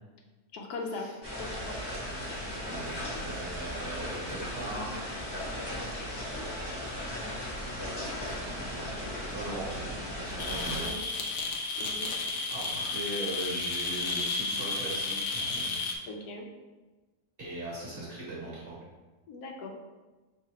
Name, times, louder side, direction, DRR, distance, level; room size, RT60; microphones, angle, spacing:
voice 1, 0.5-1.1 1.4-1.7 10.8-11.0 11.8-12.1 16.1-16.5 19.3-19.8, left 3 dB, 90° left, 2 dB, 1.2 m, -39 dB
sound 1, 1.2-10.9, left 1 dB, 20° left, 0.9 m, -37 dB
voice 2, 2.7-4.9 8.5-8.9 9.2-10.9 12.5-15.7 17.4-18.8, right 2 dB, 40° right, -6 dB, 1.4 m, -39 dB
sweet static sound, 10.4-16.0, left 3 dB, 70° left, 0.5 m, -32 dB
4.7 x 3.2 x 2.8 m, 1.2 s
omnidirectional pair, 1.6 m